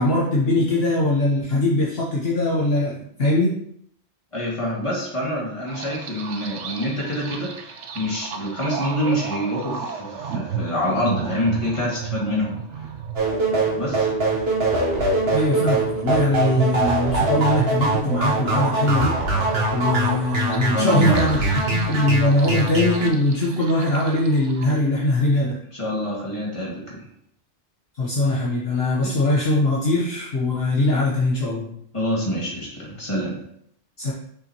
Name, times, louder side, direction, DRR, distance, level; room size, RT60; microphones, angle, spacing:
voice 1, 0.0-3.5 15.3-19.2 19.7-21.4 21.7-25.6 27.9-31.7 34.0-34.1, left 1 dB, 60° left, -5 dB, 1.4 m, -21 dB
voice 2, 4.3-12.9 13.8-14.1 20.7-21.2 25.7-27.0 29.0-29.1 31.9-33.4, equal, 25° left, -5 dB, 2.2 m, -26 dB
sound 1, 5.7-24.7, right 6 dB, 80° right, 1.1 m, -34 dB
sound 2, 13.2-23.1, right 2 dB, 60° right, 1.5 m, -23 dB
6.6 x 5.6 x 3.0 m, 0.69 s
omnidirectional pair, 1.2 m